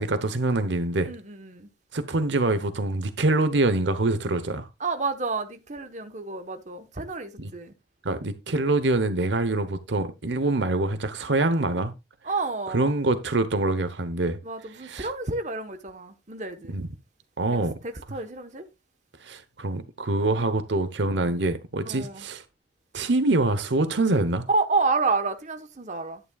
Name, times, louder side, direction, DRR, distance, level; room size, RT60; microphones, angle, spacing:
voice 1, 0.0-1.1 1.9-4.7 7.4-7.5 8.0-11.9 12.7-14.4 14.8-15.1 16.7-16.9 17.4-17.8 19.2-22.4 22.9-24.4, right 2 dB, 75° right, 1.0 m, -25 dB
voice 2, 1.0-1.7 4.8-7.7 12.2-13.0 14.4-16.8 17.8-18.7 20.2-20.4 21.2-21.4 21.8-22.2 24.5-26.2, right 3 dB, 40° right, 1.1 m, -30 dB
11.0 x 9.7 x 2.4 m
head